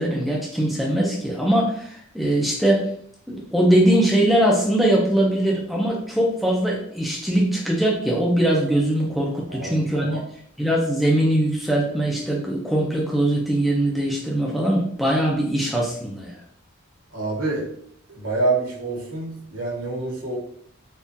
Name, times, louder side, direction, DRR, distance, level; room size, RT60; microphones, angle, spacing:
voice 1, 0.0-2.9 3.3-10.2 10.6-16.4, right 1 dB, ahead, -3 dB, 0.5 m, -21 dB
voice 2, 9.5-10.2 17.1-17.7 18.2-20.4, right 3 dB, 80° right, -3 dB, 1.1 m, -27 dB
3.6 x 2.4 x 2.7 m, 0.63 s
head